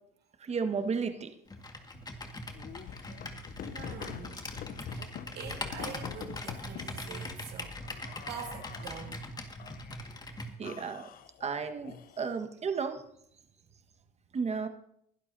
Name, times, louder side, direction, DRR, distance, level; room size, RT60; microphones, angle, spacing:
voice 1, 0.4-1.3 10.6-11.1 11.4-13.0 14.3-14.7, right 5 dB, 35° right, 7 dB, 1.6 m, -33 dB
Computer keyboard, 1.5-10.5, left 2 dB, 20° left, 1.9 m, -42 dB
sound 1, 2.6-7.0 7.8-9.1 9.6-10.2 10.6-12.5, left 9 dB, 50° left, 0.8 m, -45 dB
voice 2, 3.7-4.5 4.9-7.8 8.3-9.2, right 8 dB, 65° right, 3 dB, 1.9 m, -44 dB
21.5 x 11.5 x 2.8 m, 0.73 s
supercardioid pair, 90°, 18 cm